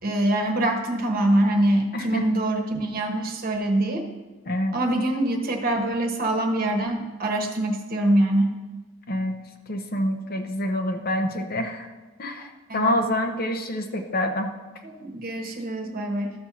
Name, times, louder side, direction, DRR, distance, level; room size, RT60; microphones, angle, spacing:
voice 1, 0.0-4.0 4.7-8.6 12.7-13.0 14.8-16.3, right 1 dB, 40° right, 3 dB, 1.1 m, -24 dB
voice 2, 1.9-2.4 4.5-4.8 9.1-9.4 9.7-11.9 12.2-14.5, left 1 dB, 45° left, 5 dB, 0.8 m, -27 dB
13.0 x 4.3 x 6.0 m, 1.2 s
head